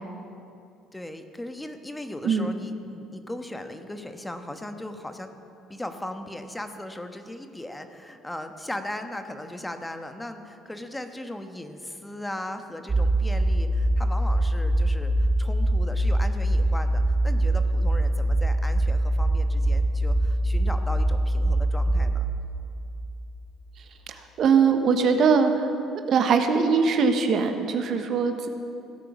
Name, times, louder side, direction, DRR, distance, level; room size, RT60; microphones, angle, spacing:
voice 1, 0.9-5.3 5.7-22.3, left 1 dB, 10° left, 7 dB, 1.2 m, -37 dB
voice 2, 2.2-2.6 24.1-25.7 26.1-28.5, right 5 dB, 55° right, 7 dB, 1.1 m, -21 dB
sound 1, 12.9-22.1, right 1 dB, 25° right, 1.4 m, -23 dB
16.0 x 8.9 x 6.1 m, 2.6 s
hypercardioid pair, 55°, 0 cm